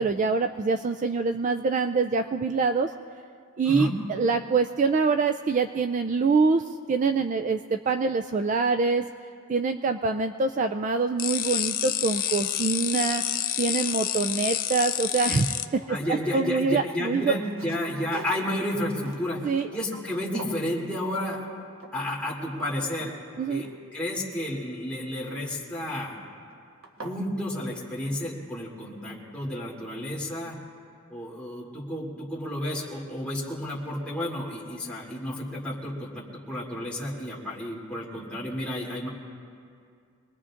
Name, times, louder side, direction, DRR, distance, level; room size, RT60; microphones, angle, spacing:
voice 1, 0.0-2.9 3.6-6.6 6.9-9.0 9.5-13.2 13.6-15.5 15.9-17.3 19.4-19.7 23.4-23.6, right 4 dB, 35° right, 8 dB, 0.3 m, -25 dB
sound 1, 11.2-15.6, left 11 dB, 40° left, 0.5 m, -28 dB
sound 2, 12.9-13.0 13.5-14.9 15.2-16.6 17.1-20.1 20.4-20.7 21.3-21.5 21.8-22.2 22.6-24.2 25.6-26.0 26.5-26.6 26.8-27.2, right 2 dB, 65° right, 1.3 m, -45 dB
voice 2, 15.9-21.4 21.9-23.1 23.5-23.7 23.9-26.2 27.0-30.6 31.1-39.1, left 1 dB, 5° left, -6 dB, 2.9 m, -31 dB
25.5 x 20.0 x 2.5 m, 2.3 s
head